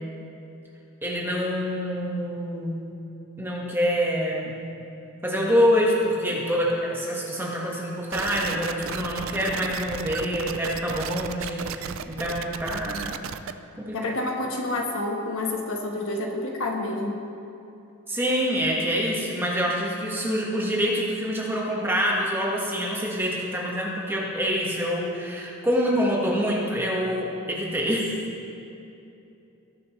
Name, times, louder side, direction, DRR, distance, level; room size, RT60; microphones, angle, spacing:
voice 1, 1.0-2.9 3.4-4.7 5.2-13.2 13.8-14.0 18.1-28.1, equal, 10° right, -3 dB, 1.3 m, -26 dB
sound 1, 8.1-13.5, right 7 dB, 65° right, 0.4 m, -34 dB
voice 2, 13.9-17.2, left 2 dB, 70° left, 1 dB, 1.2 m, -28 dB
19.5 x 7.0 x 3.1 m, 2.8 s
head